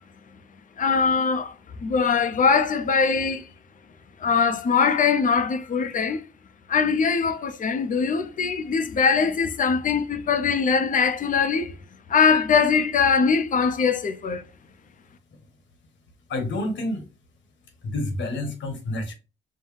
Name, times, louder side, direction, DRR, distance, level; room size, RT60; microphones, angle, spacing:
voice 1, 0.8-1.5 1.8-3.4 4.2-6.3 6.7-11.8 12.1-14.4, left 5 dB, 40° left, 0.6 m, -22 dB
voice 2, 16.3-17.1 17.8-19.1, left 1 dB, 70° left, 1.3 m, -28 dB
5.5 x 2.1 x 3.3 m
cardioid pair, 90°, 20 cm